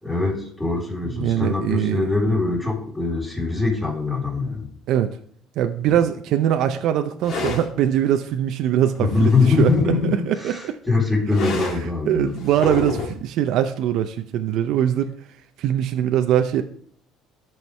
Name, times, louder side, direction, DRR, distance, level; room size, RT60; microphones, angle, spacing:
voice 1, 0.0-4.7 5.9-6.0 9.0-12.3, left 3 dB, 5° left, -2 dB, 3.7 m, -22 dB
voice 2, 1.0-2.1 4.9-5.2 5.6-10.8 12.1-15.1 15.6-16.6, right 10 dB, 65° right, 7 dB, 0.5 m, -22 dB
sound 1, 7.2-7.7 8.9-10.0 11.3-11.9 12.4-13.2, left 3 dB, 55° left, 2.1 m, -29 dB
13.5 x 4.5 x 3.3 m, 0.63 s
cardioid pair, 110°, 0 cm